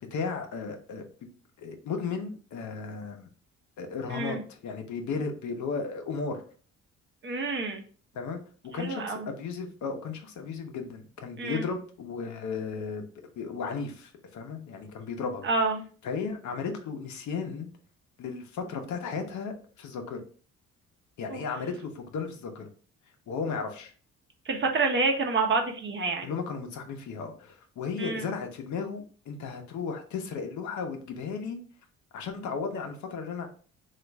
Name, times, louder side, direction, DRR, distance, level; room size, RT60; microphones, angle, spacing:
voice 1, 0.1-1.0 1.6-3.3 3.8-6.4 8.1-13.0 13.4-15.5 16.0-17.7 18.2-20.2 21.2-22.7 23.3-23.9 26.2-31.6 32.1-33.5, left 5 dB, 70° left, 4 dB, 0.8 m, -35 dB
voice 2, 4.1-4.4 7.2-7.8 8.7-9.3 11.4-11.7 15.4-15.8 21.3-21.4 24.4-26.3 28.0-28.3, right 3 dB, 40° right, 2 dB, 0.8 m, -28 dB
2.9 x 2.5 x 3.4 m, 0.41 s
cardioid pair, 90°, 30 cm